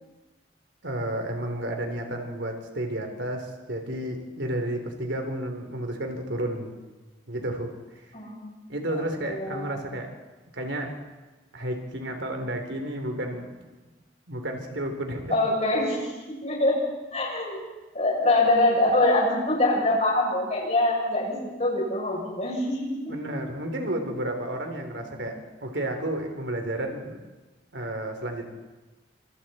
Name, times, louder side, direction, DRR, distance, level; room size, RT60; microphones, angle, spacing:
voice 1, 0.8-6.7 7.3-7.7 8.7-10.1 10.5-11.0 11.5-13.6 14.3-15.4 23.1-25.3 25.6-27.2 27.7-28.5, right 1 dB, 75° right, 4 dB, 3.6 m, -31 dB
voice 2, 8.1-8.7 8.9-9.8 15.3-16.1 16.4-16.8 17.1-17.6 17.9-23.1 25.1-25.2, left 2 dB, 40° left, -2 dB, 7.6 m, -24 dB
26.5 x 26.5 x 4.4 m, 1.2 s
head